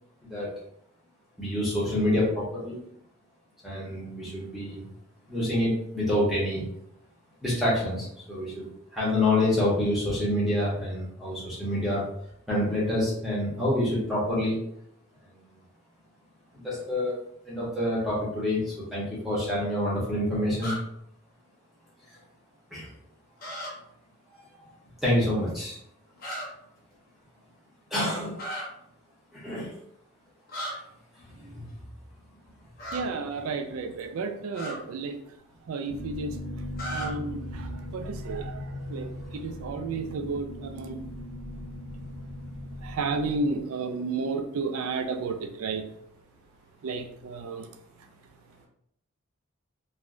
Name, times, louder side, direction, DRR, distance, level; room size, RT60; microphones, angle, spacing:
voice 1, 1.4-2.8 3.6-4.9 5.3-6.6 7.4-12.0 12.5-14.6 16.6-17.1 17.5-20.7 22.7-22.9 25.0-25.8 27.9-28.4 29.3-29.7 31.4-31.7, left 1 dB, ahead, -8 dB, 0.9 m, -27 dB
sound 1, 20.6-20.8 23.4-23.7 26.2-26.5 28.3-28.6 30.5-30.7 32.8-33.0 34.5-34.7 36.8-37.1, equal, 45° left, 0.9 m, -34 dB
voice 2, 32.9-35.2 35.7-36.4 36.9-41.0 42.8-45.9 46.8-47.7, right 4 dB, 80° right, 7 dB, 0.3 m, -32 dB
sound 2, 35.9-43.6, left 1 dB, 60° left, 0.4 m, -38 dB
3.4 x 2.3 x 2.5 m, 0.73 s
head